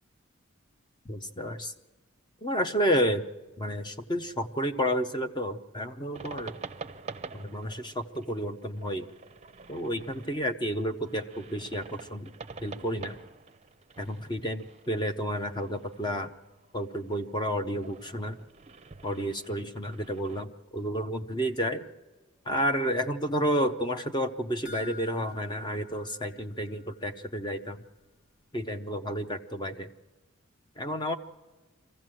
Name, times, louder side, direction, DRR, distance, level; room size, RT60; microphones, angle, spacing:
voice 1, 1.1-1.7 2.4-3.2 3.6-6.5 7.3-9.1 9.7-12.3 12.6-13.2 14.0-16.3 16.7-18.4 19.0-21.9 22.5-27.8 28.5-29.9 30.8-31.2, equal, 20° left, 7 dB, 0.6 m, -31 dB
sound 1, 6.1-20.4, right 4 dB, 30° right, 0.6 m, -47 dB
sound 2, 24.7-27.2 27.5-27.6 28.0-28.1, left 4 dB, 55° left, 2.5 m, -48 dB
25.0 x 15.5 x 7.6 m, 1.3 s
head